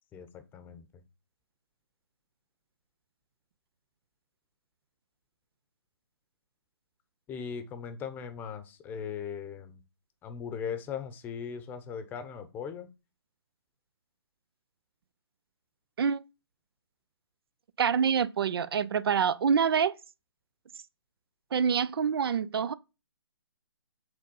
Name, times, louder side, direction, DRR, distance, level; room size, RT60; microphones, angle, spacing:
voice 1, 0.1-1.0 7.3-9.8 10.2-12.9, left 7 dB, 15° left, 0.8 m, -39 dB
voice 2, 17.8-19.9 21.5-22.7, right 7 dB, 60° right, 0.5 m, -26 dB
7.9 x 3.9 x 5.3 m
hypercardioid pair, 150°, 14 cm